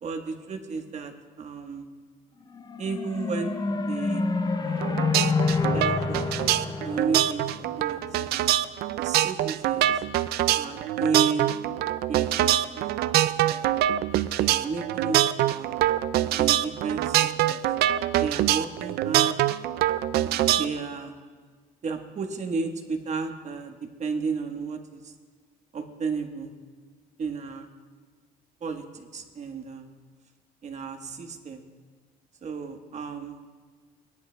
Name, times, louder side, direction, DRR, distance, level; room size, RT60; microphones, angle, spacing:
voice 1, 0.0-1.9 2.8-3.5 3.9-4.2 4.6-5.1 5.7-6.5 6.8-8.4 9.0-10.0 10.6-11.5 12.1-13.1 13.4-13.6 14.1-15.8 16.3-17.6 18.2-19.3 20.6-21.1 21.8-25.1 25.7-26.5 27.2-27.7 28.6-29.9 30.6-31.7 32.4-33.4, right 5 dB, 45° right, 5 dB, 1.2 m, -33 dB
sound 1, 2.5-8.1, left 4 dB, 25° left, 0.6 m, -28 dB
sound 2, 4.8-20.8, right 13 dB, 70° right, 0.4 m, -24 dB
19.0 x 10.5 x 2.2 m, 1.5 s
cardioid pair, 110°, 17 cm